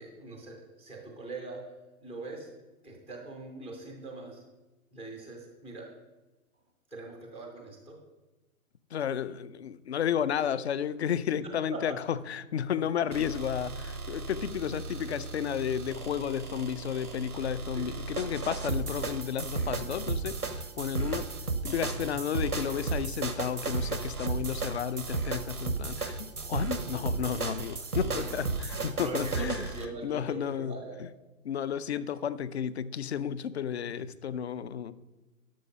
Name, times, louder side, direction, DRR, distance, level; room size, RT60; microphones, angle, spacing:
voice 1, 0.0-1.7 2.0-2.5 2.8-4.4 4.9-5.9 6.9-8.0 11.4-12.0 17.7-17.9 19.9-20.0 26.7-26.9 28.0-28.2 29.0-31.0 33.9-34.0, right 2 dB, 5° left, 1 dB, 0.4 m, -42 dB
voice 2, 8.9-29.7 30.0-31.1 31.4-34.9, left 8 dB, 50° left, 17 dB, 0.6 m, -32 dB
sound 1, 13.1-29.9, right 4 dB, 90° right, 1.1 m, -34 dB
11.5 x 6.6 x 5.1 m, 1.1 s
figure-of-eight pair, 115°, 44 cm